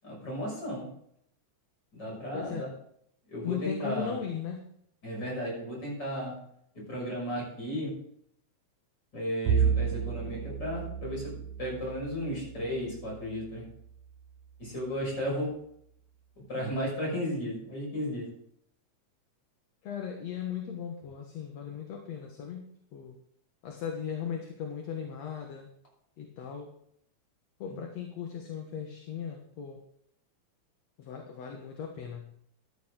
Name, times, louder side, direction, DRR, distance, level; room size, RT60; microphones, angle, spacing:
voice 1, 0.0-0.8 1.9-2.7 3.3-4.2 5.0-6.3 6.8-7.9 9.1-11.3 11.6-13.6 14.6-15.5 16.5-18.3 27.7-27.8, equal, 35° left, -3 dB, 7.2 m, -34 dB
voice 2, 2.3-2.7 3.4-4.7 19.8-22.6 22.9-23.2 23.6-25.7 26.2-26.7 27.6-29.8 31.1-32.3, left 7 dB, 65° left, 2 dB, 2.5 m, -37 dB
Bowed string instrument, 9.5-14.0, right 7 dB, 80° right, 2.2 m, -32 dB
13.5 x 12.0 x 3.8 m, 0.69 s
omnidirectional pair, 3.5 m